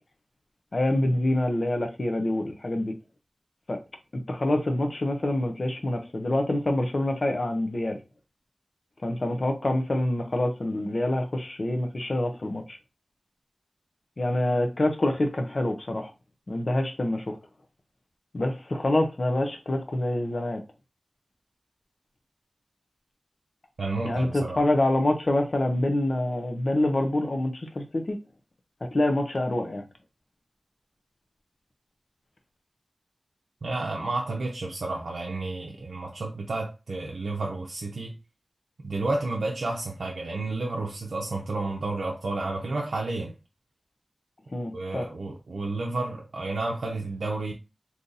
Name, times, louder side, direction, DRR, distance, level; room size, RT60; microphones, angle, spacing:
voice 1, 0.7-2.9 3.7-3.8 4.3-8.0 9.0-12.8 14.2-16.1 16.5-17.4 18.3-20.6 24.0-28.2 28.9-29.8 44.5-45.1, left 1 dB, 55° left, 0.6 m, -26 dB
voice 2, 23.8-24.6 33.6-38.2 38.8-43.3 44.7-47.5, right 2 dB, 85° right, 0.5 m, -31 dB
2.8 x 2.6 x 3.8 m
wide cardioid pair, 65°, 0 cm